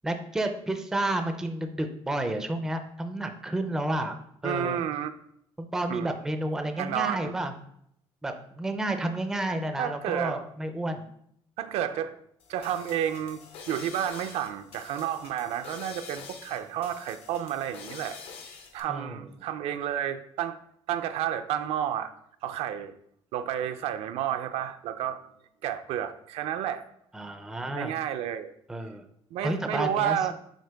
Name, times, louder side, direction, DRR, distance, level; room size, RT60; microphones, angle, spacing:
voice 1, 0.0-4.2 4.4-4.8 5.7-7.5 8.2-11.0 18.9-19.2 27.1-27.9 28.7-29.0 29.4-30.3, right 1 dB, 5° right, 6 dB, 0.4 m, -31 dB
voice 2, 4.4-5.1 5.9-6.1 6.8-7.3 9.8-10.4 11.6-12.2 12.5-18.2 18.4-20.6 20.9-22.1 22.4-23.0 23.3-25.2 25.6-26.9 27.8-28.5 29.3-30.3, right 10 dB, 70° right, 9 dB, 0.4 m, -31 dB
sound 1, 12.4-18.8, left 5 dB, 65° left, 0.8 m, -46 dB
6.4 x 4.5 x 3.4 m, 0.71 s
cardioid pair, 170°, 11 cm